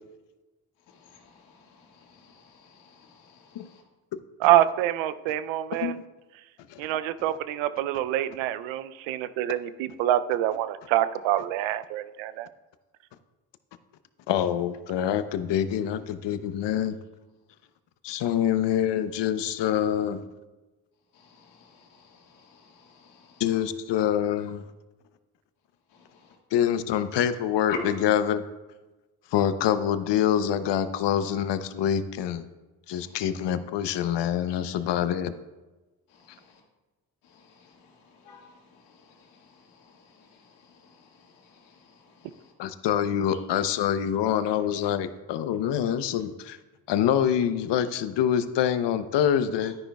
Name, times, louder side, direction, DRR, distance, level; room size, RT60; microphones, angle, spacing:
voice 1, 0.9-3.8 21.1-23.4 25.9-26.4 27.7-27.8 32.9-33.2 36.1-36.6 37.2-42.5, left 7 dB, 80° left, 0 dB, 1.9 m, -47 dB
voice 2, 4.4-6.0 6.8-12.5, right 13 dB, 80° right, 14 dB, 0.6 m, -26 dB
voice 3, 14.3-17.0 18.0-20.2 23.4-24.6 26.5-28.4 29.3-32.5 32.9-35.3 42.6-46.6 46.9-49.7, left 9 dB, 65° left, 12 dB, 0.8 m, -25 dB
12.0 x 9.9 x 2.3 m, 1.2 s
hypercardioid pair, 50°, 46 cm